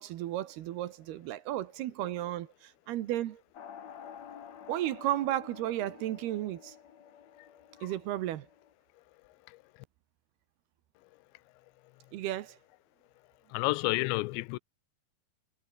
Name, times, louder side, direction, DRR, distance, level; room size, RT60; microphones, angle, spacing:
voice 1, 0.0-3.4 4.7-6.8 7.8-8.5 12.1-12.6, right 13 dB, 70° right, 2.9 m, -34 dB
sound 1, 3.5-8.7, left 8 dB, 50° left, 2.6 m, -50 dB
voice 2, 13.5-14.6, left 22 dB, 85° left, 2.9 m, -29 dB
omnidirectional pair, 5.1 m